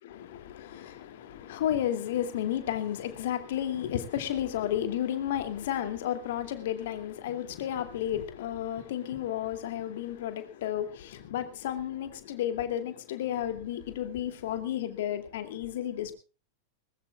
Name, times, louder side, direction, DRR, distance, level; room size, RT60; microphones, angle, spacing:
voice 1, 0.0-16.1, left 11 dB, 55° left, 9 dB, 2.5 m, -32 dB
21.0 x 20.0 x 2.4 m, 0.35 s
figure-of-eight pair, 90°, 0 cm